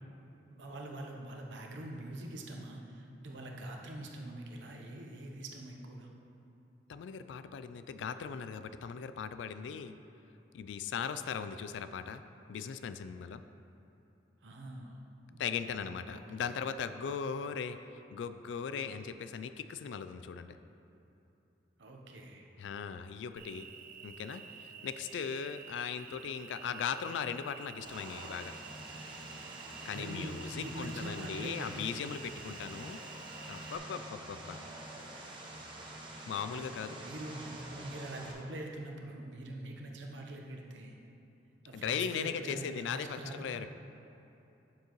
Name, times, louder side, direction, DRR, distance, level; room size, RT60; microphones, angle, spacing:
voice 1, 0.5-6.1 14.4-15.0 15.3-15.6 16.1-16.2 16.5-16.6 21.8-22.5 29.9-31.9 36.5-36.7 37.0-41.0 41.6-43.6, right 1 dB, 80° right, 1 dB, 0.9 m, -44 dB
voice 2, 6.9-10.0 10.5-12.2 12.5-13.4 15.4-17.8 18.1-20.6 22.6-23.7 24.0-28.5 29.8-33.0 33.5-34.6 36.3-37.0 41.7-43.7, left 7 dB, 75° left, 11 dB, 0.3 m, -38 dB
Cricket, 23.4-33.8, right 7 dB, 50° right, 0.4 m, -51 dB
Vehicle, 27.8-38.3, right 1 dB, 25° right, 1.0 m, -47 dB
9.3 x 7.0 x 3.0 m, 2.9 s
head